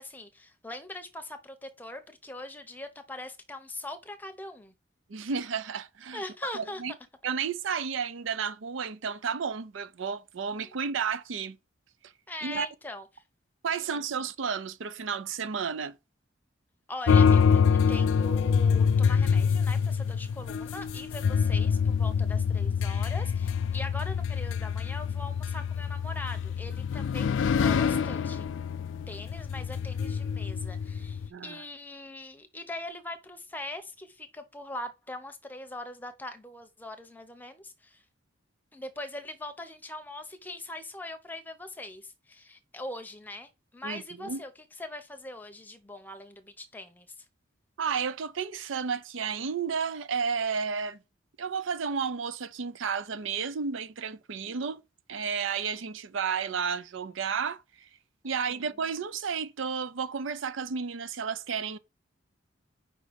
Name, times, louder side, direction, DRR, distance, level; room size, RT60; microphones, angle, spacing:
voice 1, 0.0-4.7 6.1-6.8 10.6-10.7 12.3-13.1 13.8-14.0 16.9-28.5 29.1-38.0 38.7-44.5 44.8-47.2 58.2-58.7, left 1 dB, 10° left, 0.7 m, -41 dB
voice 2, 5.1-6.2 6.5-6.9 7.2-11.6 12.4-12.7 13.6-15.9 31.3-31.6 43.8-44.4 47.8-51.0 51.4-54.8 55.1-57.6 58.2-61.8, right 6 dB, 75° right, 0.5 m, -32 dB
sound 1, 17.1-31.3, left 6 dB, 75° left, 0.3 m, -26 dB
5.2 x 3.7 x 5.1 m
head